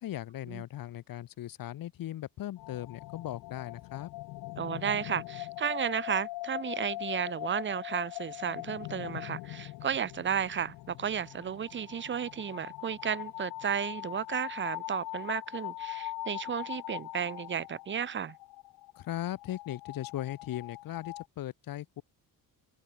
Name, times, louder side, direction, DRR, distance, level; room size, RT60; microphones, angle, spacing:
voice 1, 0.0-4.1 19.0-22.0, left 13 dB, 65° left, 1.6 m, -38 dB
sound 1, 2.6-21.3, left 19 dB, 90° left, 0.7 m, -41 dB
voice 2, 4.6-18.3, right 8 dB, 30° right, 0.6 m, -33 dB
cardioid pair, 125°, 37 cm